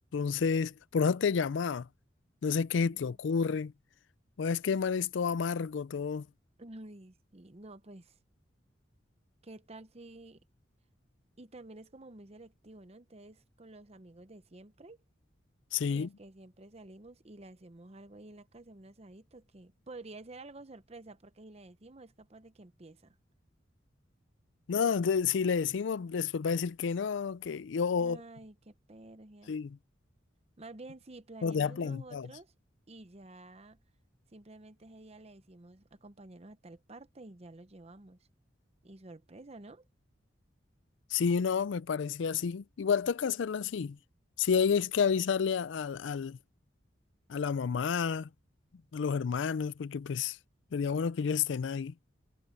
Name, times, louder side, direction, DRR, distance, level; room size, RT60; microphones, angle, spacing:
voice 1, 0.1-1.9 2.4-3.7 4.4-6.3 15.7-16.1 24.7-28.2 29.5-29.8 31.4-32.3 41.1-44.0 44.4-46.4 47.3-48.3 48.9-50.4 50.7-51.9, left 6 dB, 75° left, 0.4 m, -30 dB
voice 2, 2.8-3.2 6.6-8.2 9.4-10.4 11.4-15.0 15.9-23.1 28.0-29.6 30.6-32.5 32.9-33.8 34.3-38.2 38.8-39.9, right 2 dB, 35° right, 0.9 m, -51 dB
head